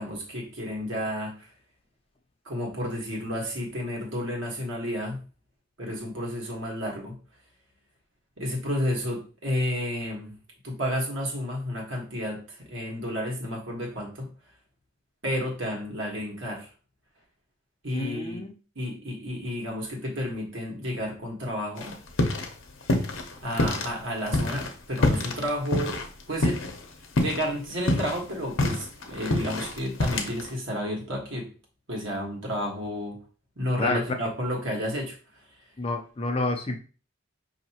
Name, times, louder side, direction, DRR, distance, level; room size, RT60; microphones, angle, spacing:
voice 1, 0.0-1.5 2.4-5.2 5.8-7.2 8.4-10.4 10.6-14.3 15.2-16.7 17.8-18.4 18.7-21.9 23.4-26.0 26.3-26.6 27.2-31.5 31.9-33.2 33.6-35.2, equal, 70° right, 0 dB, 1.4 m, -31 dB
voice 2, 17.9-18.5 33.8-34.0 35.8-36.8, left 2 dB, 30° left, 4 dB, 0.5 m, -28 dB
sound 1, 21.8-22.5 22.8-23.9 24.3-26.8 27.2-27.4 27.7-30.5, left 2 dB, 70° left, 0.8 m, -26 dB
5.5 x 2.8 x 2.8 m, 0.36 s
head